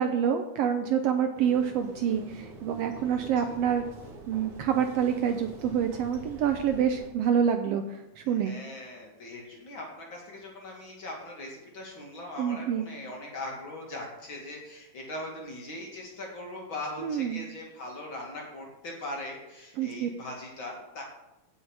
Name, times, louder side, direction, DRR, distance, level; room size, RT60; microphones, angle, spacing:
voice 1, 0.0-3.8 4.3-8.6 12.4-12.9 17.0-17.4 19.8-20.1, right 8 dB, 80° right, 6 dB, 1.5 m, -27 dB
sound 1, 1.4-7.1, right 2 dB, 55° right, 2.4 m, -46 dB
voice 2, 3.1-3.5 8.3-21.0, left 1 dB, 45° left, -1 dB, 2.8 m, -40 dB
16.5 x 5.5 x 4.8 m, 0.93 s
omnidirectional pair, 3.4 m